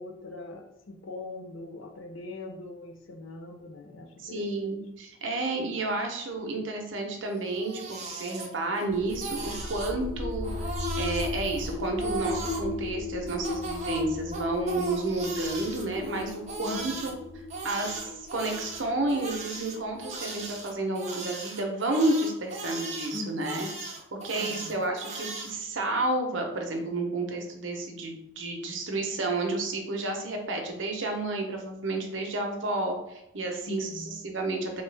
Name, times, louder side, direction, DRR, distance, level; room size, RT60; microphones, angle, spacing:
voice 1, 0.0-4.8 16.6-17.0 23.1-23.8 24.4-24.9 33.7-34.2, left 2 dB, 85° left, 4 dB, 0.7 m, -41 dB
voice 2, 4.2-10.5 11.0-17.2 17.6-23.7 24.1-34.8, right 2 dB, 70° right, 2 dB, 0.8 m, -31 dB
Crying sobbing, 7.4-8.8 9.1-10.0 10.4-12.7 13.3-17.1 17.5-25.5, right 3 dB, 35° right, 0.7 m, -38 dB
sound 1, 8.9-20.7, left 3 dB, 30° left, 0.4 m, -37 dB
3.9 x 2.9 x 3.3 m, 0.86 s
head